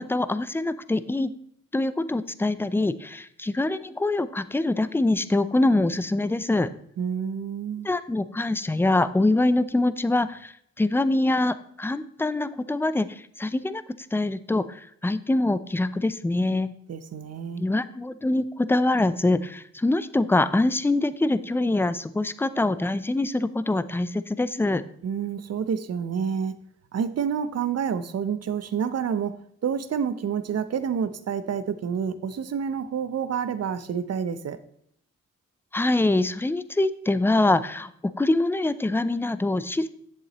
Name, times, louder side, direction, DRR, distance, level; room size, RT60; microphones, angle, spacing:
voice 1, 0.0-1.3 1.7-6.7 7.8-13.8 14.1-16.7 17.6-24.8 35.7-37.9 38.2-39.9, left 2 dB, 5° left, 14 dB, 0.5 m, -24 dB
voice 2, 7.0-7.9 16.9-17.6 25.0-26.6 26.9-29.3 29.6-34.6, right 7 dB, 50° right, 12 dB, 0.7 m, -28 dB
8.2 x 7.1 x 3.0 m, 0.69 s
supercardioid pair, 45°, 32 cm